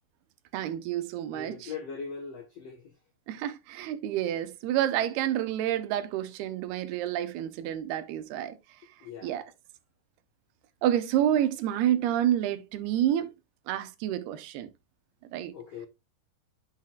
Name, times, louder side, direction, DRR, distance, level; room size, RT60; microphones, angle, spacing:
voice 1, 0.5-1.7 3.3-8.6 9.2-9.5 10.8-13.3 13.7-14.7 15.3-15.5, right 11 dB, 80° right, 2.7 m, -29 dB
voice 2, 1.3-2.9 9.0-9.5 15.5-15.9, left 5 dB, 80° left, 1.4 m, -40 dB
10.0 x 6.6 x 2.3 m
omnidirectional pair, 4.7 m